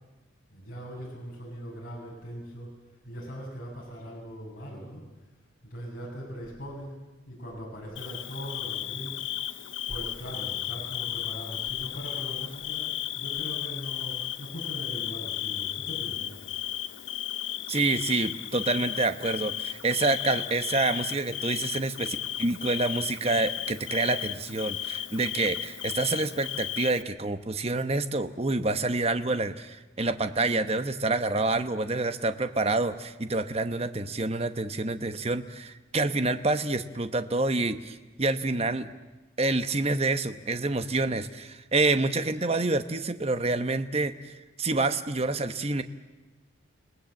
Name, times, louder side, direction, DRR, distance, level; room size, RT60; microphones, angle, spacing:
voice 1, 0.5-2.7 3.0-5.0 5.6-6.9 7.2-9.2 9.9-16.3, equal, 45° left, -4 dB, 6.7 m, -40 dB
Bird / Cricket, 8.0-27.0, left 11 dB, 70° left, 0.9 m, -34 dB
voice 2, 17.7-38.9 39.4-45.8, right 2 dB, 30° right, 9 dB, 1.0 m, -27 dB
29.5 x 19.0 x 7.7 m, 1.2 s
head